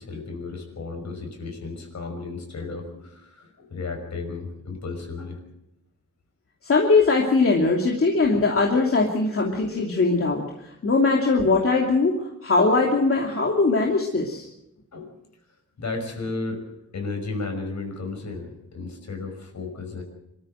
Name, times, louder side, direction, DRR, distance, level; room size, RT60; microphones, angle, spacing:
voice 1, 0.0-5.4 14.9-15.1 15.8-16.6 16.9-20.0, left 3 dB, 65° left, 4 dB, 5.7 m, -33 dB
voice 2, 6.6-14.5, left 3 dB, 50° left, -1 dB, 2.8 m, -21 dB
25.5 x 14.0 x 7.8 m, 0.83 s
wide cardioid pair, 130°, 30 cm